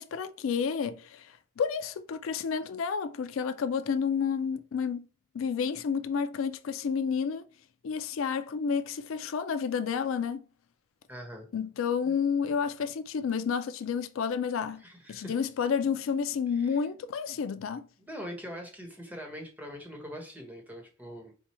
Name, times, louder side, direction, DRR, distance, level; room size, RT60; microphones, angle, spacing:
voice 1, 0.0-5.1 5.3-7.4 7.8-10.4 11.5-14.8 15.1-17.9, left 6 dB, 85° left, 0.4 m, -30 dB
voice 2, 11.1-11.5 12.0-12.1 14.8-15.4 16.5-16.8 18.1-21.3, equal, 10° right, 1.1 m, -43 dB
4.5 x 2.2 x 4.2 m
head